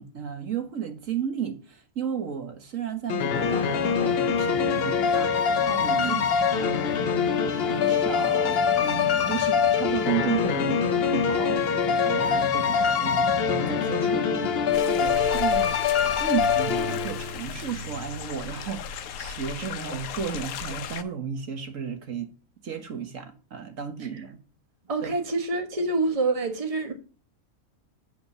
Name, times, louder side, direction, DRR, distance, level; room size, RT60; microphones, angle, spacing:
voice 1, 0.0-6.8 7.4-14.2 14.8-15.8 16.2-22.3 22.6-24.4 25.0-25.1, right 7 dB, 65° right, 1.5 m, -33 dB
sound 1, 3.1-17.4, left 7 dB, 55° left, 0.8 m, -24 dB
sound 2, 3.3-14.7, left 2 dB, 20° left, 1.0 m, -37 dB
sound 3, 14.7-21.0, left 5 dB, 80° left, 1.1 m, -36 dB
voice 2, 24.9-26.9, right 3 dB, 25° right, 1.3 m, -27 dB
8.0 x 5.0 x 6.6 m
omnidirectional pair, 1.5 m